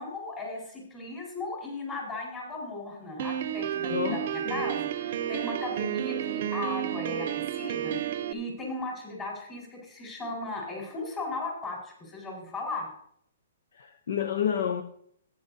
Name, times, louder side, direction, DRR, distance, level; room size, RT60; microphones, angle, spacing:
voice 1, 0.0-12.9, left 2 dB, 20° left, 4.4 m, -37 dB
Piano, 3.2-8.3, right 10 dB, 50° right, 0.7 m, -31 dB
voice 2, 3.9-4.3 4.5-4.6 13.8-14.8, left 8 dB, 70° left, 0.7 m, -29 dB
14.0 x 9.6 x 2.7 m
hypercardioid pair, 155°, 0 cm